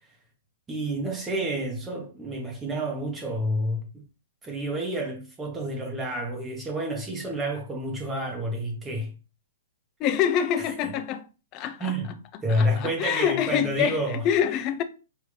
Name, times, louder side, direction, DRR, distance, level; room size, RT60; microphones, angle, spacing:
voice 1, 0.7-3.9 4.4-9.1 10.6-10.9 11.8-12.1 12.4-14.2, equal, 15° right, 0.9 m, -29 dB
voice 2, 10.0-11.3 11.5-11.9 12.5-14.8, left 9 dB, 30° left, 0.4 m, -26 dB
5.2 x 2.6 x 3.2 m
hypercardioid pair, 145°, 0 cm